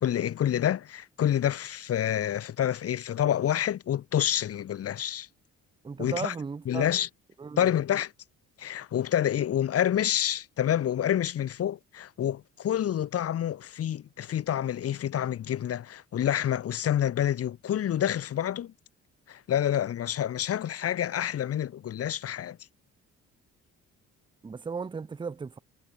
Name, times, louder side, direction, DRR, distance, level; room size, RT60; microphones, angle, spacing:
voice 1, 0.0-5.3 6.0-6.3 6.7-7.1 7.6-8.1 8.6-18.7 19.3-22.6, left 10 dB, 50° left, 0.9 m, -28 dB
voice 2, 5.8-6.9 7.4-7.7 24.4-25.6, right 5 dB, 15° right, 0.5 m, -36 dB
cardioid pair, 90°, 30 cm